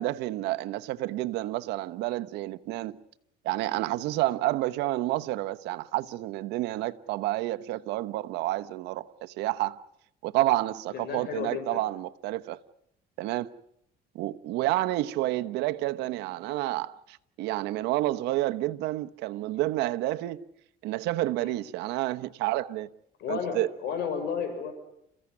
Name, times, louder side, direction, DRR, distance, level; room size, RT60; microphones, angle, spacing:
voice 1, 0.0-3.0 3.4-9.8 10.2-12.6 13.2-13.5 14.1-20.4 20.8-22.9 23.3-23.7, right 16 dB, 90° right, 1.0 m, -29 dB
voice 2, 10.9-11.8 21.4-21.6 23.2-24.7, left 6 dB, 75° left, 5.9 m, -33 dB
29.5 x 15.5 x 9.7 m
cardioid pair, 110°, 17 cm